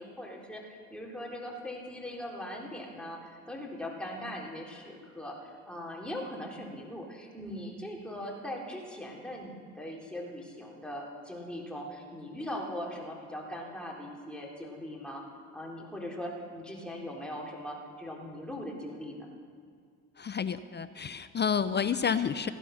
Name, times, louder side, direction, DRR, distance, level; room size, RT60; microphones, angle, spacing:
voice 1, 0.0-15.2 15.5-19.3, left 1 dB, ahead, -2 dB, 3.5 m, -40 dB
voice 2, 20.2-22.5, left 7 dB, 30° left, 13 dB, 0.6 m, -30 dB
16.0 x 10.0 x 6.5 m, 2.2 s
hypercardioid pair, 60°, 37 cm